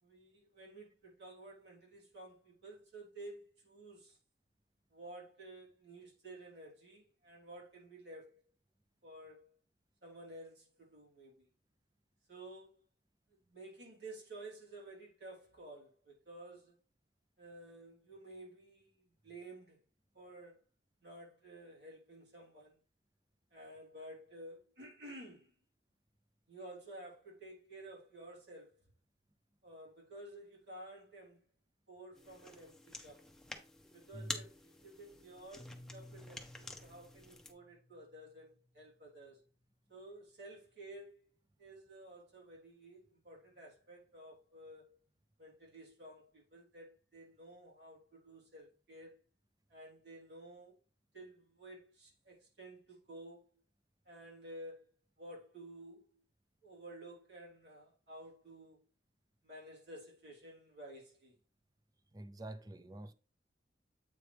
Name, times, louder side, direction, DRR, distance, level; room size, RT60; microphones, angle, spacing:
voice 1, 0.0-4.2 4.9-8.4 9.0-9.5 10.0-11.5 12.3-12.8 13.3-16.8 17.4-19.8 20.1-20.6 21.0-22.8 23.5-25.5 26.5-28.8 29.6-31.4 31.9-33.2 33.9-39.4 39.9-41.3 41.6-45.0 45.4-49.2 49.7-50.8 51.1-53.4 54.0-54.9 55.2-56.2 56.6-58.9 59.4-61.3, right 1 dB, 80° right, 3.4 m, -53 dB
sound 1, 32.1-37.5, left 2 dB, 5° left, 0.9 m, -49 dB
voice 2, 34.1-34.4 62.1-63.1, right 1 dB, 20° right, 0.5 m, -47 dB
Piano, 35.6-40.0, left 1 dB, 30° left, 1.4 m, -58 dB
8.1 x 4.8 x 3.3 m
head